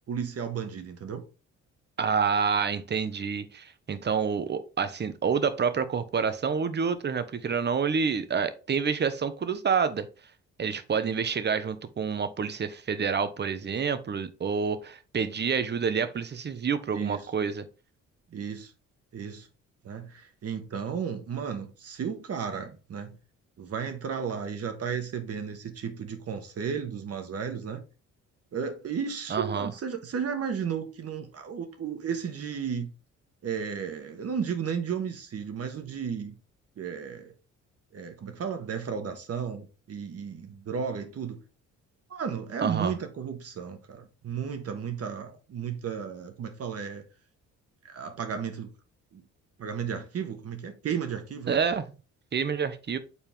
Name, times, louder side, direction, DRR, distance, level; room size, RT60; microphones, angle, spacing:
voice 1, 0.1-1.2 16.9-17.3 18.3-18.7 19.1-19.5 19.8-23.2 23.6-27.8 28.5-32.9 33.4-36.3 36.8-37.3 37.9-41.4 42.1-47.0 47.8-48.7 49.1-49.2 49.6-51.6, right 7 dB, 50° right, 1.4 m, -34 dB
voice 2, 2.0-10.1 10.6-17.7 29.3-29.7 42.6-42.9 51.5-51.8 52.3-53.0, right 6 dB, 35° right, 0.9 m, -28 dB
7.0 x 4.3 x 3.6 m
cardioid pair, 90°, 30 cm